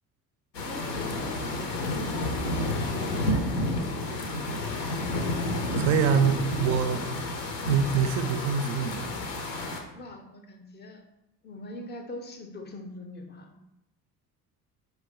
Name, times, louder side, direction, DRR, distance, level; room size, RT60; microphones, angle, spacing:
sound 1, 0.5-9.8, left 1 dB, 75° left, 0.7 m, -30 dB
voice 1, 0.6-2.3 2.8-4.2 10.0-11.0 11.4-13.5, left 1 dB, 20° left, 5 dB, 0.5 m, -43 dB
voice 2, 5.8-7.0 7.7-9.1, right 6 dB, 35° right, 9 dB, 0.4 m, -25 dB
4.5 x 2.2 x 3.7 m, 0.89 s
figure-of-eight pair, 55°, 48 cm